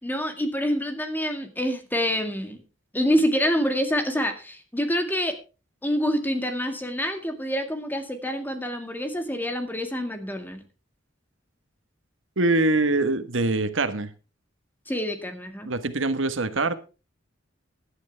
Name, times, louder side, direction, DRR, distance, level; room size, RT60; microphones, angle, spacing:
voice 1, 0.0-2.6 2.9-5.4 5.8-10.6 14.9-15.7, equal, 10° left, 2.0 m, -26 dB
voice 2, 12.4-14.1 15.6-16.7, right 2 dB, 85° right, 1.4 m, -23 dB
16.5 x 11.5 x 3.4 m
head